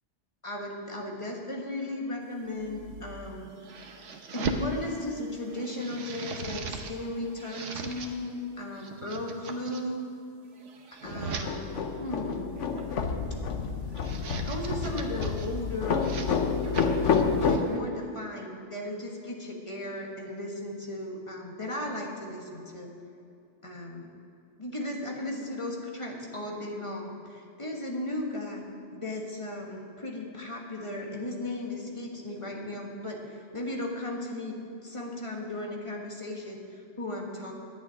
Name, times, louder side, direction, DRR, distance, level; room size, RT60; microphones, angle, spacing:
voice 1, 0.4-3.5 4.3-10.1 10.9-11.7 12.0-12.5 14.4-16.1 17.1-22.9 23.6-24.1 24.6-28.7 28.9-34.5 34.8-37.5, left 1 dB, 25° left, -1 dB, 1.7 m, -36 dB
sound 1, 2.4-4.7 5.2-7.0 7.3-8.1 8.7-9.8 10.4-11.5 12.6-13.0 13.8-15.5 15.9-17.8, right 4 dB, 85° right, 1.2 m, -39 dB
sound 2, 11.0-17.6, left 5 dB, 80° left, 1.2 m, -29 dB
11.0 x 7.0 x 9.3 m, 2.5 s
omnidirectional pair, 1.2 m